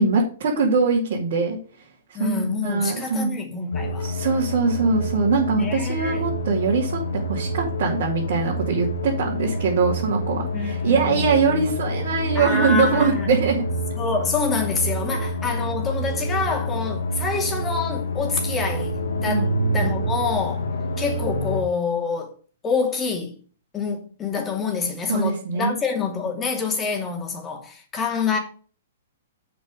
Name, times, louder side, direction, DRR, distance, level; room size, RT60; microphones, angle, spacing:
voice 1, 0.0-1.6 2.1-3.3 4.0-13.6 19.3-19.5 25.1-25.7, right 4 dB, 60° right, 2.6 m, -22 dB
voice 2, 2.1-4.1 5.6-6.2 10.5-11.7 12.3-13.3 14.0-20.7 21.0-22.3 22.6-23.4 23.7-28.4, left 5 dB, 20° left, 2.7 m, -27 dB
sound 1, 3.7-21.6, equal, 75° left, 1.6 m, -27 dB
7.9 x 5.4 x 6.4 m
hypercardioid pair, 120°, 0 cm